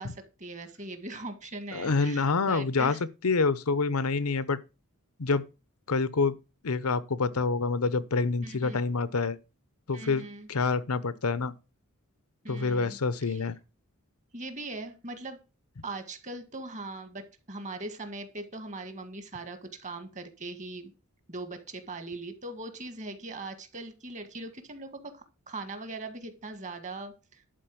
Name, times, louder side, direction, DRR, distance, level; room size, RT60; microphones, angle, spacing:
voice 1, 0.0-3.0 8.4-8.8 9.9-10.5 12.4-13.4 14.3-15.4 15.8-20.9 21.3-27.4, right 2 dB, 35° right, 1.7 m, -40 dB
voice 2, 1.7-3.0 3.2-4.6 5.2-5.5 5.9-6.4 6.6-9.4 9.9-11.5 12.5-13.6, left 4 dB, 85° left, 0.8 m, -27 dB
11.5 x 4.5 x 7.7 m
head